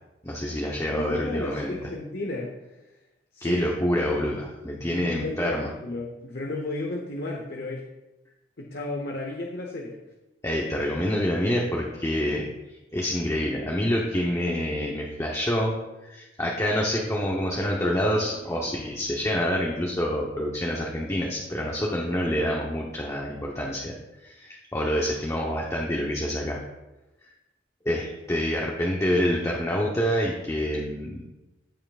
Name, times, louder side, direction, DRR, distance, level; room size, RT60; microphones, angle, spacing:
voice 1, 0.2-1.8 3.4-5.7 10.4-12.4 12.9-23.9 24.2-26.6 27.8-31.2, equal, 15° left, -2 dB, 0.9 m, -27 dB
voice 2, 0.9-2.5 3.3-3.6 4.9-7.9 8.6-10.0, left 2 dB, 60° left, 0 dB, 1.0 m, -33 dB
15.5 x 5.7 x 2.4 m, 1.0 s
head